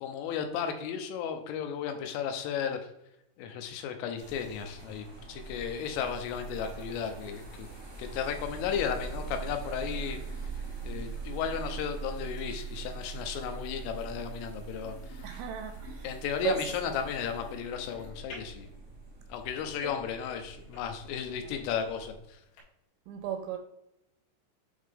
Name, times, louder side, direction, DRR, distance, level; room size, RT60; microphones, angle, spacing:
voice 1, 0.0-2.8 3.4-7.7 8.0-10.2 10.8-15.3 16.0-18.7 19.3-22.4, left 8 dB, 85° left, 3.4 m, -34 dB
sound 1, 4.2-22.6, left 3 dB, 65° left, 3.8 m, -54 dB
sound 2, 4.2-22.2, right 5 dB, 55° right, 0.8 m, -42 dB
voice 2, 15.2-16.1 16.4-16.6 19.8-19.9 23.1-23.6, right 10 dB, 85° right, 3.0 m, -34 dB
8.5 x 3.7 x 3.5 m
omnidirectional pair, 5.7 m